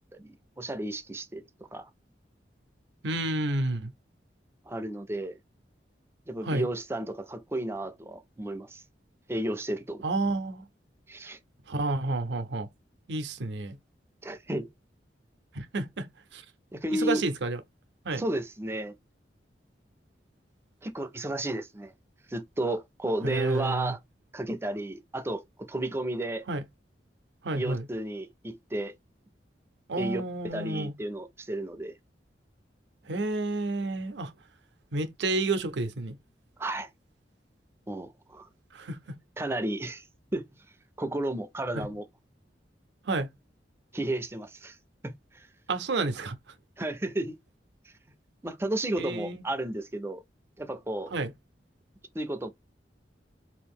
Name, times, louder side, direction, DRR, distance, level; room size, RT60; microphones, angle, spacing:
voice 1, 0.2-1.4 1.7-1.9 4.7-5.4 6.3-8.8 9.3-10.0 11.1-11.4 14.2-14.7 16.7-17.2 18.2-19.0 20.8-21.9 22.3-24.0 24.3-26.5 27.5-28.9 30.0-31.9 36.6-36.9 37.9-38.5 39.4-40.0 40.3-40.5 41.0-42.1 43.9-44.8 45.0-45.5 46.8-47.4 48.4-50.2 50.6-51.1 52.1-52.5, right 1 dB, 15° right, 0.4 m, -33 dB
voice 2, 3.0-3.9 6.4-6.7 10.0-10.7 11.7-12.7 13.1-13.8 15.5-16.1 16.3-16.4 16.9-17.6 18.0-18.2 23.2-23.9 26.5-26.6 27.4-27.9 29.9-30.9 33.0-34.3 34.9-36.2 38.7-39.2 41.7-41.9 43.0-43.3 45.7-46.4 49.0-49.5 51.1-51.3, right 2 dB, 75° right, 0.6 m, -30 dB
2.9 x 2.5 x 3.5 m
head